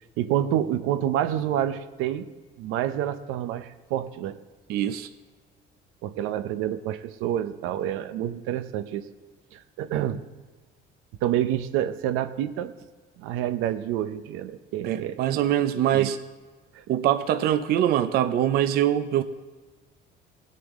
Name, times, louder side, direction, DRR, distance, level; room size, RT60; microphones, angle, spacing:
voice 1, 0.2-2.3 2.6-4.4 6.0-9.0 9.5-10.2 11.2-12.7 13.2-15.2 15.9-16.1 16.7-16.8, right 11 dB, 85° right, 11 dB, 0.7 m, -28 dB
voice 2, 4.7-5.1 14.8-16.2 16.9-19.2, right 11 dB, 50° right, 10 dB, 0.5 m, -23 dB
18.0 x 6.7 x 3.6 m, 1.4 s
cardioid pair, 170°, 21 cm